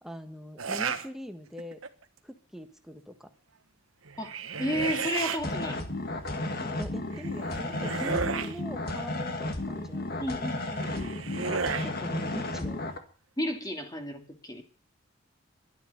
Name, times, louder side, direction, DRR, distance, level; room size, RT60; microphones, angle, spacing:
voice 1, 0.0-1.8 2.2-3.3 6.6-10.5 11.8-12.8, equal, ahead, 7 dB, 1.4 m, -41 dB
sound 1, 0.6-1.1 1.6-2.0 4.1-5.4 7.1-8.6 10.6-11.9, right 5 dB, 90° right, 1.3 m, -33 dB
voice 2, 4.6-5.8 10.2-11.1 13.4-14.6, left 1 dB, 20° left, 4 dB, 2.3 m, -32 dB
sound 2, 5.4-13.0, left 2 dB, 50° left, 1.8 m, -33 dB
12.0 x 10.5 x 8.1 m, 0.41 s
head